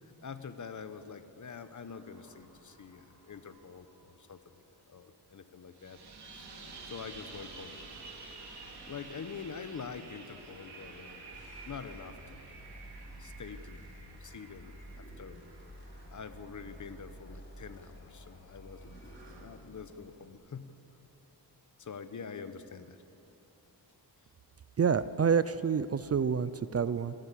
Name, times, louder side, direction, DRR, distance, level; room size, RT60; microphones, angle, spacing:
voice 1, 0.0-4.4 4.9-6.0 6.3-6.5 6.8-7.8 8.9-11.3 11.6-12.4 13.2-13.9 14.2-15.4 16.1-19.0 19.4-20.8 21.8-23.0, left 6 dB, 45° left, 10 dB, 1.1 m, -45 dB
sound 1, 1.9-4.2 5.7-17.4 18.9-19.4, right 3 dB, 70° right, 3.3 m, -51 dB
sound 2, 11.3-20.3, equal, 25° left, 4.7 m, -51 dB
voice 2, 24.8-27.1, right 6 dB, 35° right, 15 dB, 0.5 m, -28 dB
27.5 x 12.0 x 8.5 m, 3.0 s
wide cardioid pair, 125°, 41 cm